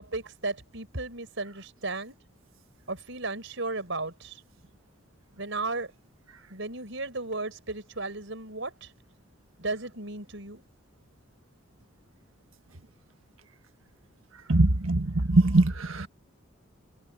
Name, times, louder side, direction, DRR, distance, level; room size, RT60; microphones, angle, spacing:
voice 1, 0.0-2.2 2.9-4.3 5.4-5.9 6.5-8.9 9.6-10.6, right 3 dB, 65° right, 6.2 m, -34 dB
voice 2, 14.5-16.1, right 2 dB, 85° right, 1.5 m, -22 dB
head